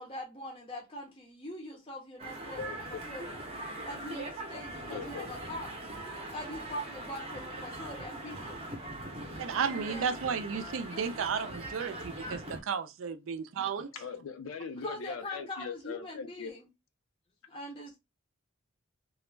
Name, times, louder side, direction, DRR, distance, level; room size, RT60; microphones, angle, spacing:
voice 1, 0.0-3.4 3.8-5.8 6.3-8.6 9.7-10.2 10.9-11.0 14.8-16.7 17.5-18.0, left 1 dB, 25° left, 0.5 m, -43 dB
sound 1, 2.2-12.6, right 1 dB, 30° right, 0.6 m, -41 dB
voice 2, 2.6-3.0 4.9-5.3 13.9-16.5, left 6 dB, 75° left, 0.4 m, -40 dB
voice 3, 9.4-13.9, right 6 dB, 70° right, 0.4 m, -33 dB
2.3 x 2.0 x 3.1 m
head